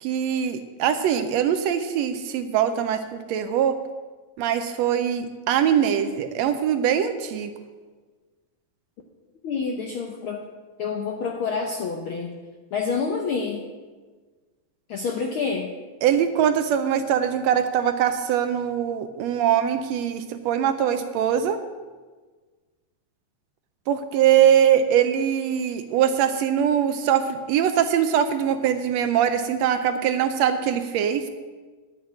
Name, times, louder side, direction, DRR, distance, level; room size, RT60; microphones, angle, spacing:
voice 1, 0.0-3.7 4.4-7.5 16.0-21.6 23.9-31.3, right 9 dB, 75° right, 9 dB, 1.6 m, -22 dB
voice 2, 9.4-10.4 10.8-12.3 12.7-13.6 14.9-15.7, left 5 dB, 75° left, 2 dB, 1.2 m, -27 dB
10.5 x 6.1 x 8.6 m, 1.4 s
omnidirectional pair, 3.4 m